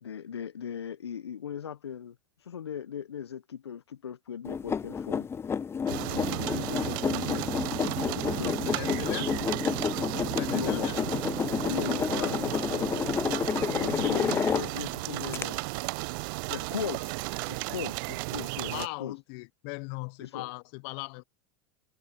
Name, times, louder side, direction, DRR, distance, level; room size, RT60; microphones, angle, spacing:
voice 1, 0.0-5.3 6.1-9.3 10.5-10.9 11.7-13.1 13.7-15.6 16.5-17.2 17.5-19.2 20.2-20.5, left 8 dB, 85° left, 1.0 m, -38 dB
sound 1, 4.4-14.9 15.3-15.4, left 6 dB, 20° left, 0.6 m, -30 dB
sound 2, 5.9-18.9, right 27 dB, 55° right, 0.4 m, -34 dB
voice 2, 8.7-9.3 10.3-11.1 18.7-21.2, left 31 dB, 55° left, 1.0 m, -38 dB
hypercardioid pair, 90°, 13 cm